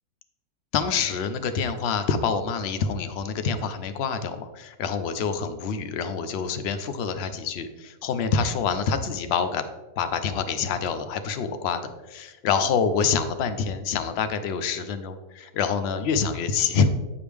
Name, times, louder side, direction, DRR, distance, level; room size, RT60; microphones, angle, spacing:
voice 1, 0.7-9.6 10.0-11.8 12.1-16.9, left 6 dB, 65° left, 10 dB, 0.6 m, -26 dB
9.1 x 4.9 x 3.4 m, 1.2 s
omnidirectional pair, 1.6 m